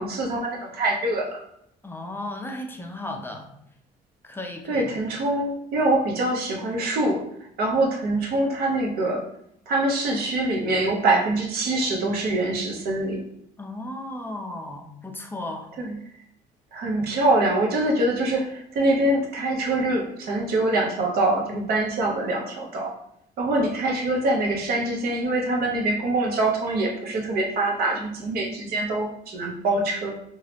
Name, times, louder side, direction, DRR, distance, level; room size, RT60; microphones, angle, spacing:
voice 1, 0.0-1.4 4.7-7.2 7.6-9.2 9.7-13.2 15.8-15.9 16.7-22.9 23.4-30.1, right 2 dB, 70° right, 0 dB, 0.8 m, -24 dB
voice 2, 1.8-3.5 4.2-4.9 13.6-15.7, left 1 dB, 15° left, 3 dB, 0.4 m, -35 dB
2.9 x 2.3 x 3.3 m, 0.74 s
cardioid pair, 110°, 17 cm